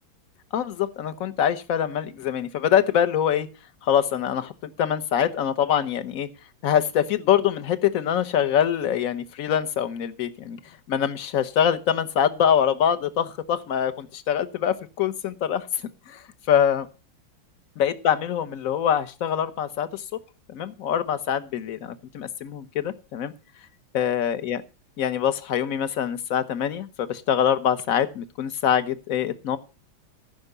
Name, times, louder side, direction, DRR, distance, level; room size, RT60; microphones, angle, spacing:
voice 1, 0.5-3.5 3.8-6.3 6.6-10.6 10.9-15.7 16.1-16.2 16.5-16.8 17.8-20.0 20.5-23.3 23.9-24.6 25.0-29.6, left 9 dB, 50° left, 13 dB, 1.2 m, -24 dB
14.5 x 6.1 x 6.7 m, 0.32 s
omnidirectional pair, 2.1 m